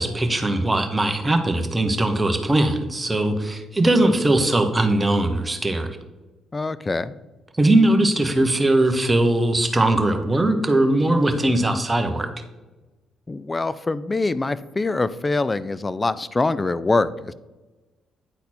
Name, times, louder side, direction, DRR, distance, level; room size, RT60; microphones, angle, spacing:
voice 1, 0.0-5.9 7.5-12.3, right 1 dB, 15° right, 6 dB, 1.0 m, -20 dB
voice 2, 6.5-7.1 13.3-17.3, left 3 dB, 25° left, 16 dB, 0.4 m, -24 dB
9.7 x 4.0 x 4.3 m, 1.1 s
cardioid pair, 90°, 0 cm